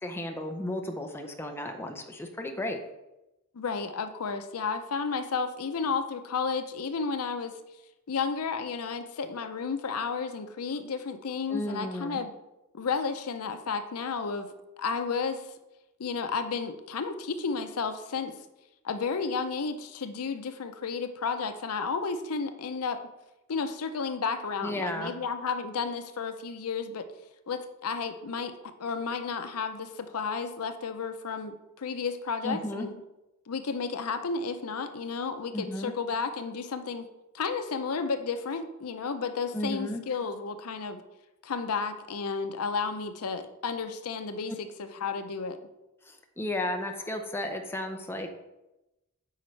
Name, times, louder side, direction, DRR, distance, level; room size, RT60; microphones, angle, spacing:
voice 1, 0.0-2.8 11.5-12.2 24.6-25.1 32.4-32.9 35.5-35.9 39.5-40.0 46.0-48.3, left 1 dB, 10° left, 4 dB, 0.6 m, -34 dB
voice 2, 3.5-7.5 8.1-12.3 12.7-14.5 14.8-15.5 16.0-18.4 18.8-23.0 23.5-27.1 27.5-28.5 28.8-32.9 33.5-37.1 37.3-41.0 41.4-45.6, left 5 dB, 85° left, 9 dB, 0.6 m, -32 dB
8.6 x 5.2 x 3.2 m, 0.97 s
head